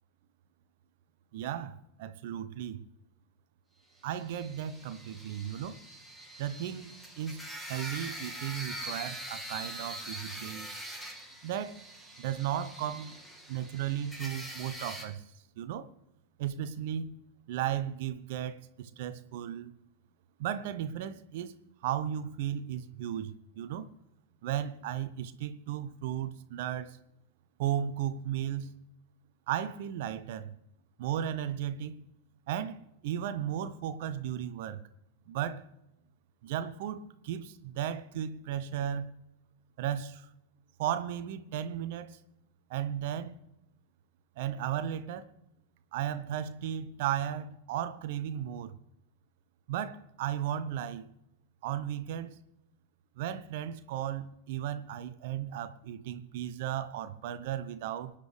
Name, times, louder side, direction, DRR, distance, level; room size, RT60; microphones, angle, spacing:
voice 1, 1.3-2.8 4.0-5.8 6.4-10.7 11.4-11.8 12.2-13.2 13.5-15.2 15.6-15.9 16.4-17.2 17.5-19.7 20.4-21.5 21.8-23.9 24.4-27.0 27.6-28.8 29.5-30.5 31.0-32.1 32.5-34.8 35.3-35.6 36.4-39.1 39.8-40.3 40.8-42.2 42.7-43.3 44.4-45.3 45.9-48.8 49.7-51.1 51.6-52.4 53.2-58.1, right 10 dB, 50° right, 0.9 m, -35 dB
sound 1, 4.1-15.1, right 1 dB, ahead, 2.1 m, -43 dB
25.0 x 10.0 x 3.4 m
figure-of-eight pair, 90°, 0 cm